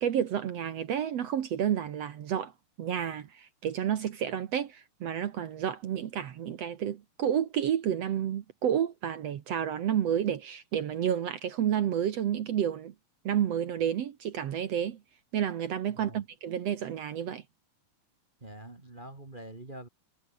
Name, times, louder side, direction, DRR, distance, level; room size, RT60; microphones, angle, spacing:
voice 1, 0.0-2.5 2.8-12.9 13.2-15.0 15.3-17.4, right 9 dB, 65° right, 1.7 m, -30 dB
voice 2, 18.4-19.9, right 1 dB, 30° right, 1.0 m, -45 dB
omnidirectional pair, 4.5 m